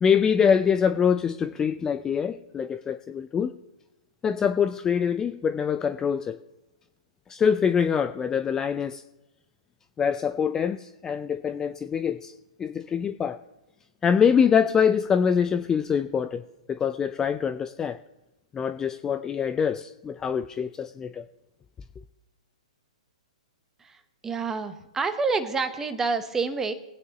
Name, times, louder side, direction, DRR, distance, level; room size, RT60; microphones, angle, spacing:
voice 1, 0.0-3.5 4.2-6.4 7.3-9.0 10.0-12.3 12.6-13.4 14.0-16.4 16.7-18.0 18.5-21.2, left 7 dB, 15° left, 10 dB, 0.3 m, -24 dB
voice 2, 23.8-26.7, right 4 dB, 10° right, 10 dB, 0.9 m, -28 dB
21.0 x 9.1 x 3.0 m, 1.0 s
figure-of-eight pair, 120°, 4 cm